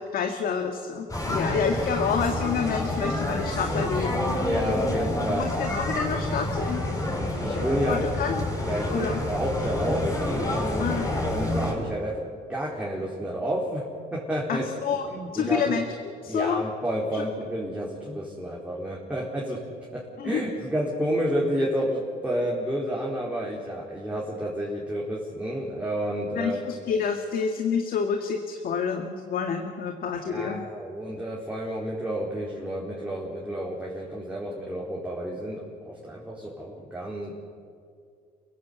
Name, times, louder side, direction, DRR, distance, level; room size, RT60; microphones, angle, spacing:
voice 1, 0.0-4.9 5.3-6.9 7.9-8.5 8.9-9.2 10.8-11.1 14.5-15.1 15.3-16.6 17.1-17.2 20.2-20.4 26.3-30.7, left 6 dB, 60° left, 4 dB, 2.0 m, -28 dB
sound 1, 1.1-11.7, left 1 dB, 20° left, 7.1 m, -28 dB
voice 2, 4.4-5.5 7.4-8.1 8.6-10.9 11.2-13.8 14.1-14.6 15.0-15.8 16.3-19.6 19.9-26.6 30.3-37.3, equal, 5° right, -4 dB, 4.3 m, -30 dB
29.0 x 16.5 x 8.4 m, 2.2 s
cardioid pair, 110°, 17 cm